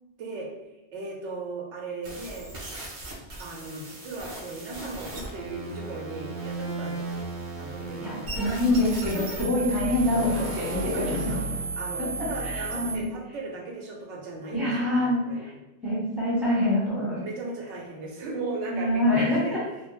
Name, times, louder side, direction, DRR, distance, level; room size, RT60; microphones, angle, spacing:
voice 1, 0.9-2.5 3.4-8.7 10.4-11.5 11.8-15.5 17.1-19.6, right 3 dB, 90° right, -1 dB, 0.9 m, -37 dB
sound 1, 2.0-13.0, right 3 dB, 55° right, 0.6 m, -35 dB
voice 2, 8.0-11.3 12.0-13.0 14.5-15.5 15.8-17.2 18.7-19.6, left 1 dB, ahead, -7 dB, 0.5 m, -26 dB
2.2 x 2.1 x 3.0 m, 0.96 s
omnidirectional pair, 1.2 m